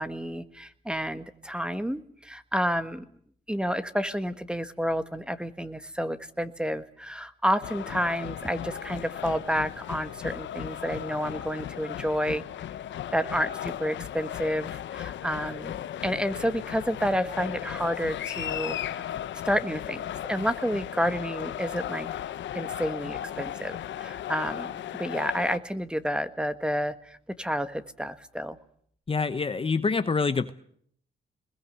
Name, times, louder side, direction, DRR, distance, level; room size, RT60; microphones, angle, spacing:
voice 1, 0.0-3.0 3.5-12.4 13.1-15.8 16.0-19.1 19.4-22.1 22.5-28.6, equal, 5° right, 11 dB, 1.5 m, -30 dB
sound 1, 7.6-25.6, left 11 dB, 70° left, 1.0 m, -36 dB
voice 2, 29.1-30.5, left 4 dB, 25° left, 11 dB, 1.0 m, -26 dB
24.0 x 21.0 x 7.9 m, 0.65 s
cardioid pair, 90°, 20 cm